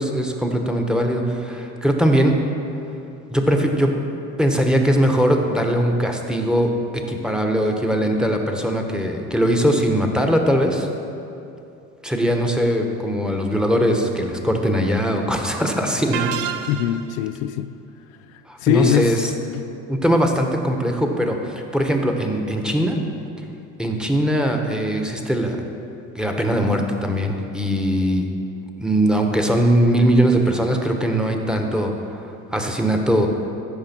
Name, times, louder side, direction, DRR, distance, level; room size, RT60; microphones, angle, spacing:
voice 1, 0.0-2.3 3.3-3.9 4.4-6.7 7.1-10.9 12.0-16.3 18.5-19.3 19.9-23.0 23.8-25.6 26.1-28.3 28.8-31.9 32.5-33.3, equal, ahead, 3 dB, 1.3 m, -20 dB
sound 1, 16.1-17.2, right 9 dB, 80° right, 0.7 m, -28 dB
voice 2, 16.7-17.7 18.6-19.7, left 11 dB, 80° left, 10 dB, 0.5 m, -22 dB
15.0 x 5.5 x 4.5 m, 2.8 s
hypercardioid pair, 65°, 40 cm